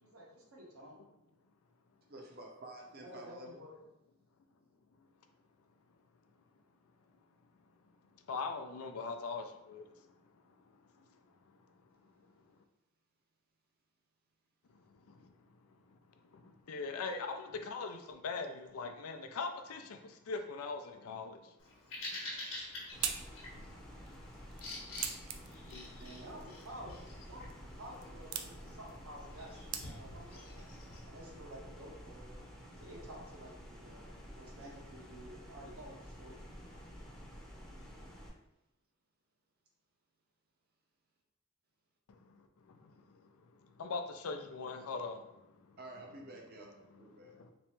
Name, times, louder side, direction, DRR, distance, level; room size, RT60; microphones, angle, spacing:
voice 1, 0.0-1.0 3.0-3.8 26.0-27.0 27.2-27.4 27.8-32.4 32.8-36.5, equal, 75° right, -2 dB, 1.0 m, -51 dB
voice 2, 2.1-3.6 45.8-47.3, right 1 dB, 45° right, 0 dB, 0.7 m, -50 dB
voice 3, 8.3-9.8 15.1-15.2 16.3-16.4 16.7-21.4 25.7-25.9 42.8-42.9 43.8-45.2, left 4 dB, 85° left, 6 dB, 0.4 m, -40 dB
Bird vocalization bird call bird song, 21.6-31.0, left 2 dB, 65° left, 1.0 m, -48 dB
sound 1, 22.3-30.3, right 8 dB, 90° right, 0.4 m, -45 dB
sound 2, 22.9-38.3, equal, 5° left, 0.7 m, -51 dB
3.3 x 3.0 x 3.1 m, 0.88 s
head